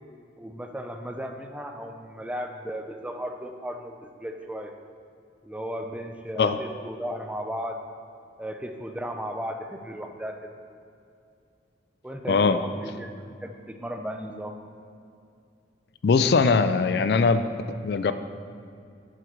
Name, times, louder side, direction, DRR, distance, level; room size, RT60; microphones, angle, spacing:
voice 1, 0.4-4.7 5.4-7.8 8.4-10.5 12.0-14.5, equal, 5° right, 5 dB, 0.4 m, -35 dB
voice 2, 12.3-12.6 16.0-17.4 17.8-18.1, left 4 dB, 60° left, 10 dB, 0.3 m, -21 dB
7.8 x 7.5 x 4.6 m, 2.5 s
head